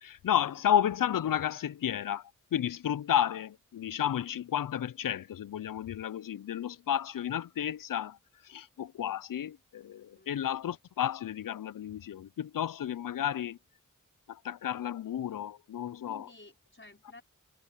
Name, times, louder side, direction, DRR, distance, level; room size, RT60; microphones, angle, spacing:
voice 1, 0.0-8.2 8.4-13.6 14.3-16.3, left 10 dB, 85° left, 0.5 m, -32 dB
voice 2, 16.1-17.2, left 2 dB, 40° left, 5.4 m, -52 dB
cardioid pair, 45°, 32 cm